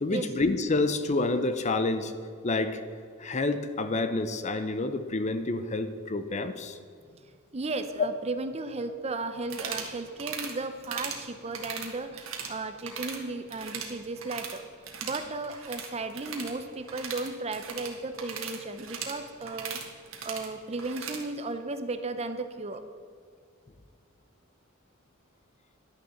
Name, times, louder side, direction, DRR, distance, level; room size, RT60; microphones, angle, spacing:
voice 1, 0.0-2.1 2.4-2.8 3.2-6.8, left 2 dB, 35° left, 10 dB, 0.6 m, -28 dB
voice 2, 7.5-14.6 15.0-19.8 20.2-22.8, right 3 dB, 30° right, 9 dB, 0.7 m, -35 dB
sound 1, 9.4-9.9 10.2-10.5 10.8-11.2 11.5-12.5 12.8-13.2 13.5-14.6 14.8-21.2, right 6 dB, 85° right, 1.6 m, -38 dB
11.5 x 6.8 x 7.0 m, 2.2 s
head